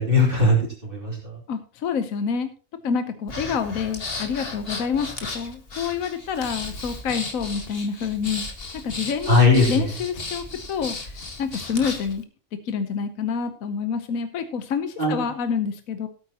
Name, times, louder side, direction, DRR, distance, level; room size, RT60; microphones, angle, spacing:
voice 1, 0.0-1.4 9.3-9.9 15.0-15.3, left 2 dB, 40° right, -2 dB, 3.1 m, -19 dB
voice 2, 1.5-2.5 2.8-8.4 8.8-9.4 9.7-12.2 12.6-16.1, left 6 dB, 75° left, 9 dB, 1.3 m, -27 dB
Breathing, 3.3-12.1, left 3 dB, 45° left, 1.9 m, -35 dB
17.0 x 8.9 x 2.9 m, 0.38 s
omnidirectional pair, 1.5 m